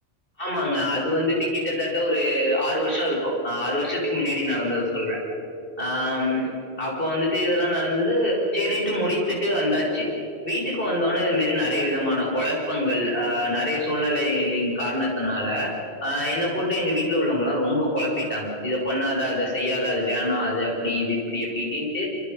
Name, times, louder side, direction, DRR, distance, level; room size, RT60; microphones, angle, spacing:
voice 1, 0.4-5.2 5.8-6.5 6.8-10.1 10.4-15.7 16.0-22.1, left 1 dB, 55° left, -3 dB, 6.7 m, -24 dB
26.0 x 26.0 x 5.8 m, 2.7 s
omnidirectional pair, 1.2 m